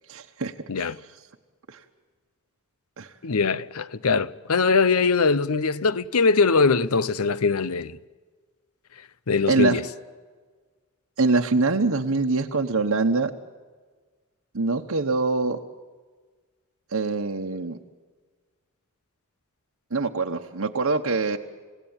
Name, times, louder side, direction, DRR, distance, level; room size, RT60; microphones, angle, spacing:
voice 1, 0.1-0.9 1.7-1.8 3.0-3.1 9.5-9.8 11.2-13.3 14.5-15.6 16.9-17.8 19.9-21.4, right 3 dB, 70° right, 1.1 m, -24 dB
voice 2, 0.7-1.0 3.2-8.0 9.0-9.9, left 4 dB, 90° left, 0.8 m, -22 dB
29.5 x 17.0 x 8.9 m
head